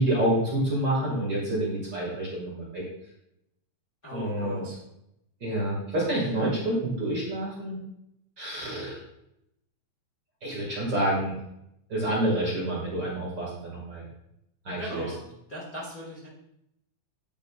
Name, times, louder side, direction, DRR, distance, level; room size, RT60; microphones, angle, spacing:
voice 1, 0.0-2.8 4.1-4.6 5.4-7.8 8.4-8.9 10.4-11.4 11.9-14.1 14.7-15.1, right 1 dB, 35° right, -5 dB, 2.3 m, -28 dB
voice 2, 4.0-4.8 14.8-15.2 15.5-16.3, equal, 35° left, -6 dB, 1.5 m, -39 dB
10.5 x 8.3 x 2.5 m, 0.80 s
omnidirectional pair, 4.3 m